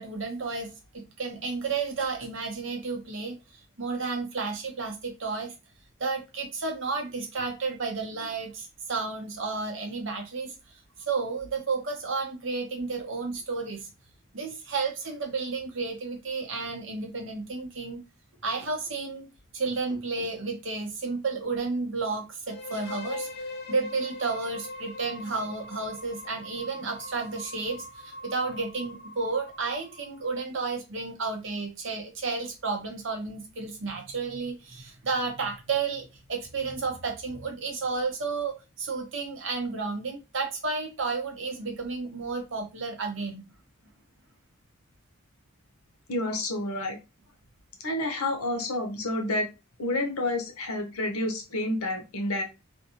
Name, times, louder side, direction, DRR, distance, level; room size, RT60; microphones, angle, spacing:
voice 1, 0.0-3.4 3.8-5.5 6.0-10.5 11.0-13.9 14.3-18.0 18.4-19.3 19.5-23.3 23.7-43.5, right 4 dB, 55° right, 3 dB, 0.8 m, -32 dB
sound 1, 22.5-30.3, left 2 dB, 45° left, 0.4 m, -41 dB
voice 2, 46.1-47.0 47.8-49.5 49.8-52.4, left 1 dB, 85° left, 4 dB, 0.8 m, -29 dB
2.5 x 2.3 x 2.8 m, 0.27 s
head